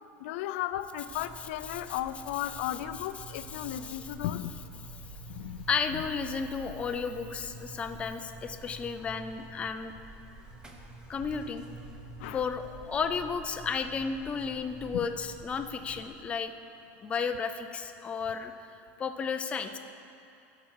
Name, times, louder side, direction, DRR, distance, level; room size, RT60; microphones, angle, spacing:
voice 1, 0.2-4.5 5.3-5.6 12.2-12.4, left 12 dB, 80° left, 12 dB, 0.4 m, -35 dB
Buzz, 1.0-16.1, right 2 dB, 10° right, 0.8 m, -47 dB
voice 2, 3.4-4.0 5.7-9.9 11.1-11.6 12.3-16.5 17.0-18.7 19.0-19.8, left 5 dB, 15° left, 7 dB, 0.4 m, -33 dB
15.5 x 5.9 x 4.7 m, 2.7 s
cardioid pair, 160°, 7 cm